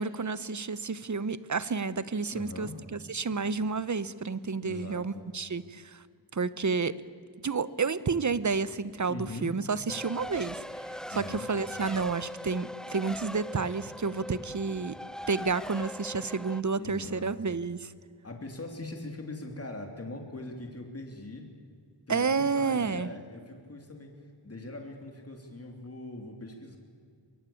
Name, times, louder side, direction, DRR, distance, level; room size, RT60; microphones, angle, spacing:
voice 1, 0.0-6.0 6.3-6.9 7.4-10.6 11.2-15.0 15.3-17.9 22.1-23.1, right 4 dB, 40° right, 16 dB, 0.9 m, -30 dB
voice 2, 2.3-2.7 4.6-5.3 9.1-9.5 11.1-11.5 16.8-17.6 18.2-21.4 22.1-24.1 24.4-26.8, left 2 dB, 35° left, 3 dB, 3.1 m, -41 dB
Race car auto racing, 9.9-16.6, equal, ahead, 0.6 m, -41 dB
23.0 x 22.5 x 8.6 m, 2.2 s
wide cardioid pair, 95°, 43 cm